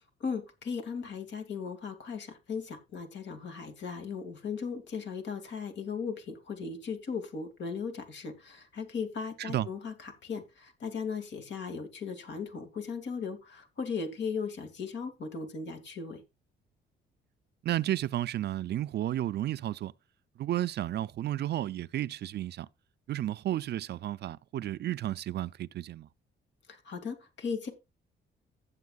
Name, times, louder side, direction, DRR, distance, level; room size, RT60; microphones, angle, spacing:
voice 1, 0.2-16.2 26.7-27.7, left 5 dB, 65° left, 2.3 m, -37 dB
voice 2, 17.6-19.9 20.4-22.7 23.1-26.1, right 13 dB, 60° right, 0.4 m, -32 dB
15.5 x 7.2 x 2.4 m
cardioid pair, 90°, 20 cm